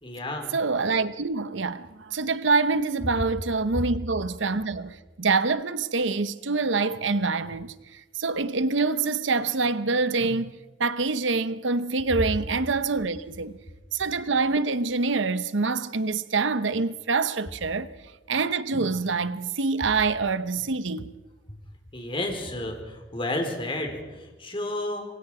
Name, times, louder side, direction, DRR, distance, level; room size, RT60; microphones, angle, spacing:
voice 1, 0.0-0.6 21.9-25.0, left 1 dB, 25° left, 4.2 m, -31 dB
voice 2, 0.5-7.7 8.2-10.5 10.8-13.6 13.9-17.9 18.3-21.1, right 4 dB, 75° right, 0.9 m, -25 dB
27.0 x 23.0 x 4.9 m
head